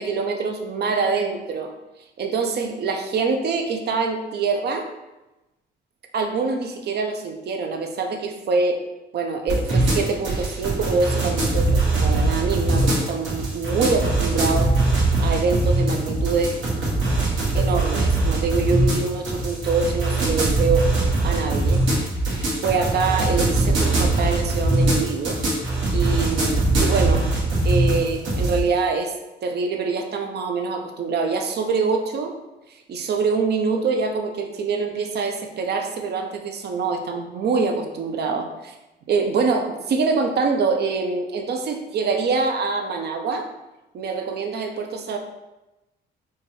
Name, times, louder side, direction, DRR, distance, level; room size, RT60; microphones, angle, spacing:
voice 1, 0.0-1.7 2.2-4.9 6.1-8.8 9.1-14.7 15.2-16.6 17.5-20.9 21.2-21.8 22.6-25.4 25.9-27.3 27.6-29.1 29.4-32.3 32.9-38.7 39.1-43.5 43.9-45.2, right 4 dB, 55° right, 5 dB, 0.6 m, -25 dB
sound 1, 9.5-28.6, right 2 dB, 75° right, 1.3 m, -21 dB
4.5 x 2.3 x 3.0 m, 1.0 s
cardioid pair, 90°, 20 cm